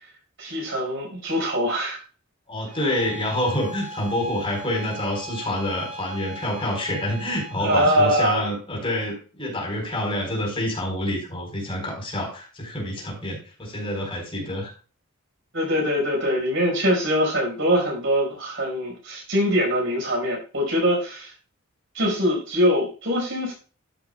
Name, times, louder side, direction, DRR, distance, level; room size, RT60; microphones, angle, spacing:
voice 1, 0.4-2.0 7.6-8.5 15.5-21.3 21.9-23.5, equal, 65° right, 0 dB, 4.8 m, -23 dB
voice 2, 2.5-14.7, left 1 dB, 25° left, 0 dB, 4.1 m, -27 dB
Bowed string instrument, 2.7-8.3, right 1 dB, 30° right, 3.0 m, -39 dB
13.0 x 8.2 x 2.3 m, 0.36 s
head